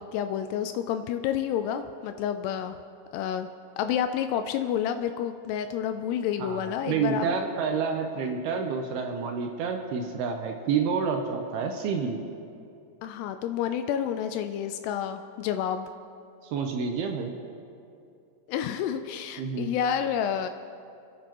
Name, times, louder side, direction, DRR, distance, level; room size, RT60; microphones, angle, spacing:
voice 1, 0.0-2.8 3.1-3.5 3.8-7.3 13.0-15.9 18.5-20.5, left 9 dB, 85° left, 8 dB, 2.4 m, -29 dB
voice 2, 6.4-12.2 16.5-17.3 19.4-19.7, right 5 dB, 75° right, 4 dB, 2.4 m, -29 dB
29.0 x 10.5 x 3.0 m, 2.5 s
omnidirectional pair, 5.2 m